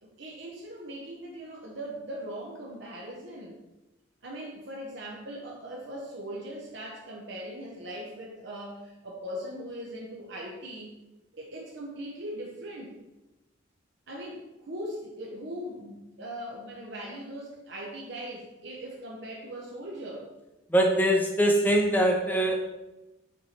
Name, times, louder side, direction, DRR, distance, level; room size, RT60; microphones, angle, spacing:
voice 1, 0.0-3.6 4.2-10.9 11.3-13.0 14.1-20.3 21.3-21.4, equal, 60° right, -2 dB, 0.9 m, -40 dB
voice 2, 20.7-22.7, right 1 dB, 10° left, 1 dB, 0.7 m, -23 dB
7.6 x 3.2 x 4.3 m, 1.0 s
head